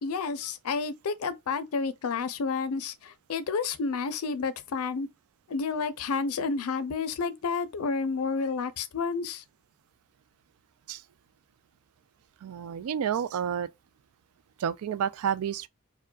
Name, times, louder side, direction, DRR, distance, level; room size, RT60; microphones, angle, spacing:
voice 1, 0.0-5.1 5.5-9.4, left 4 dB, 80° left, 0.5 m, -30 dB
voice 2, 12.4-13.7 14.6-15.7, right 8 dB, 75° right, 0.3 m, -30 dB
4.4 x 2.2 x 2.3 m
head